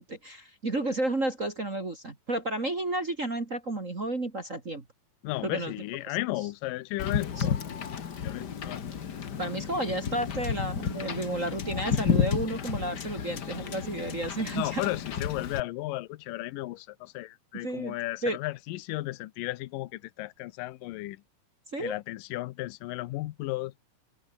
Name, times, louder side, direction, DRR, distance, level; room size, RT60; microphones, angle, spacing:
voice 1, 0.0-4.8 5.4-5.7 6.1-6.2 7.4-7.5 9.4-14.8 17.6-18.0 18.2-18.4 21.7-22.0, right 1 dB, 25° right, 2.1 m, -32 dB
voice 2, 5.2-7.7 8.2-8.8 14.6-21.2 21.8-23.7, left 18 dB, 80° left, 2.4 m, -34 dB
Wind / Boat Water vehicle, 7.0-15.6, left 7 dB, 50° left, 1.3 m, -32 dB
omnidirectional pair, 4.1 m